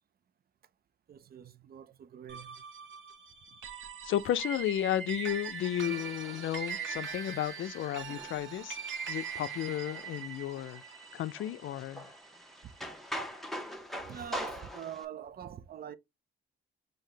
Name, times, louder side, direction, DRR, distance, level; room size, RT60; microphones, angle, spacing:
voice 1, 1.1-2.6 14.0-16.0, right 8 dB, 45° right, 0.5 m, -44 dB
sound 1, 2.3-12.9, right 6 dB, 65° right, 1.1 m, -42 dB
voice 2, 4.0-8.8 9.1-10.8 11.1-12.1, left 12 dB, 70° left, 0.4 m, -33 dB
sound 2, 5.6-15.0, equal, ahead, 0.9 m, -45 dB
5.7 x 2.7 x 3.2 m
cardioid pair, 85°, 21 cm